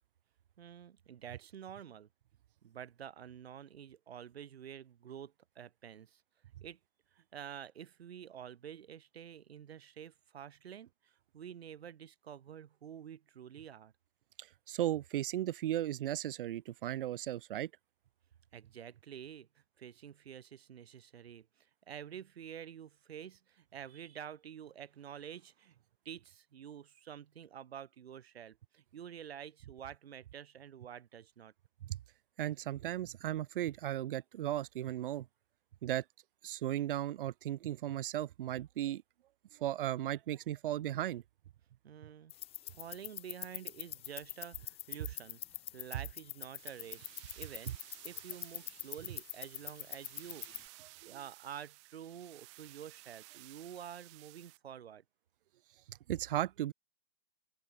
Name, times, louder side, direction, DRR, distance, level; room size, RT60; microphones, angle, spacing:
voice 1, 0.6-2.1 2.6-6.2 6.6-6.8 7.1-13.9 18.5-25.8 26.1-31.5 41.8-42.3 42.6-47.7 48.0-50.5 51.1-55.0, right 9 dB, 85° right, 1.8 m, -49 dB
voice 2, 14.4-17.7 31.9-32.0 32.4-35.3 35.8-36.0 36.4-39.0 39.5-41.2 55.9-56.7, right 13 dB, 60° right, 0.8 m, -36 dB
sound 1, 42.3-50.7, left 14 dB, 20° left, 2.1 m, -45 dB
sound 2, 46.6-54.6, right 26 dB, 30° right, 0.9 m, -56 dB
open air
hypercardioid pair, 160°, 30 cm